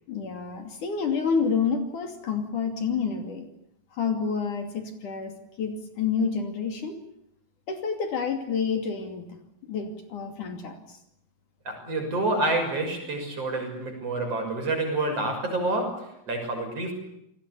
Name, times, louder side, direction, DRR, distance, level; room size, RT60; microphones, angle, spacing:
voice 1, 0.1-3.5 3.9-5.3 5.6-7.0 7.7-9.4 9.7-11.0, left 6 dB, 60° left, 6 dB, 4.0 m, -29 dB
voice 2, 11.7-16.9, right 2 dB, 40° right, 4 dB, 7.5 m, -28 dB
29.5 x 20.5 x 8.4 m, 0.77 s
omnidirectional pair, 4.3 m